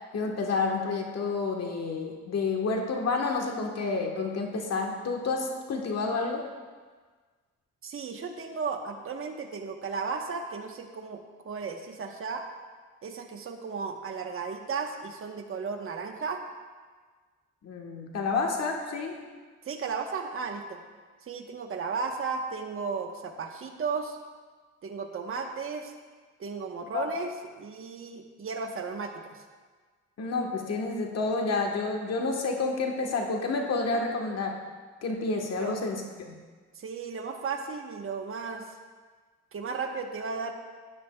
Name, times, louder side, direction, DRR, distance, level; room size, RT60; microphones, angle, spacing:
voice 1, 0.1-6.4 17.6-19.2 26.9-27.1 30.2-34.6 35.0-36.3, left 3 dB, 55° left, 2 dB, 1.4 m, -29 dB
voice 2, 7.8-12.4 13.0-16.4 19.6-20.8 21.2-24.2 24.8-25.9 26.4-29.4 35.6-35.7 36.7-38.6 39.5-40.5, right 5 dB, 45° right, 3 dB, 1.1 m, -35 dB
13.0 x 9.6 x 2.3 m, 1.5 s
cardioid pair, 90°, 30 cm